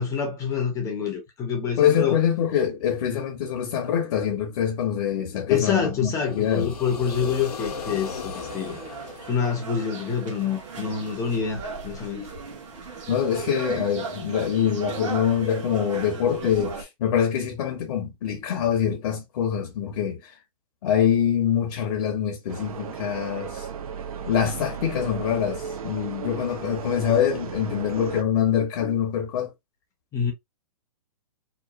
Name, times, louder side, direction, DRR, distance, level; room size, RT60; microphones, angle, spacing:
voice 1, 0.0-2.2 5.5-8.8 9.3-12.3 30.1-30.3, left 7 dB, 15° left, 0.6 m, -26 dB
voice 2, 1.8-6.7 13.1-20.4 20.8-23.7 24.2-29.5, left 9 dB, 50° left, 0.7 m, -24 dB
sound 1, 6.1-10.1, left 4 dB, 85° left, 0.7 m, -36 dB
sound 2, 8.3-16.8, right 5 dB, 55° right, 1.1 m, -36 dB
sound 3, 22.5-28.2, right 7 dB, 70° right, 0.6 m, -35 dB
2.9 x 2.1 x 2.4 m
hypercardioid pair, 145°, 19 cm